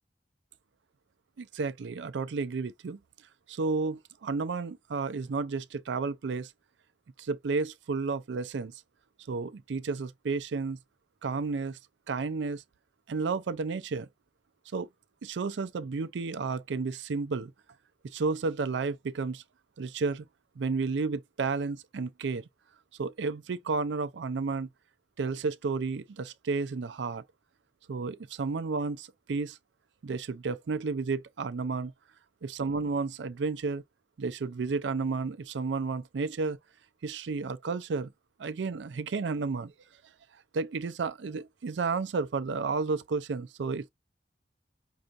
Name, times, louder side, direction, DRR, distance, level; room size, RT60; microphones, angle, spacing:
voice 1, 1.4-3.0 3.5-6.5 7.2-8.8 9.3-10.8 11.2-11.8 12.1-12.6 13.1-14.1 14.7-14.9 15.2-17.5 18.0-19.4 19.8-20.3 20.6-22.4 23.0-24.7 25.2-27.2 27.9-29.6 30.0-31.9 32.4-33.8 34.2-36.6 37.0-38.1 38.4-39.7 40.5-43.9, right 4 dB, 85° right, 0.4 m, -32 dB
5.5 x 2.5 x 2.4 m
head